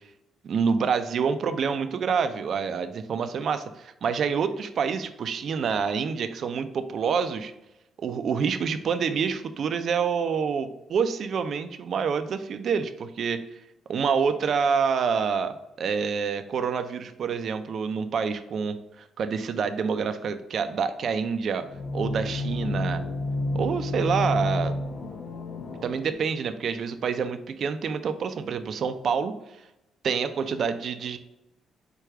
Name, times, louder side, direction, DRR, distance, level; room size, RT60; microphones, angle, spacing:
voice 1, 0.4-7.5 8.0-13.4 13.9-21.7 21.9-23.1 23.5-24.7 25.8-29.4 30.0-31.2, right 6 dB, 60° right, 9 dB, 0.4 m, -27 dB
sound 1, 21.6-26.1, left 1 dB, 65° left, 0.7 m, -30 dB
4.6 x 2.3 x 4.7 m, 0.90 s
cardioid pair, 90°, 0 cm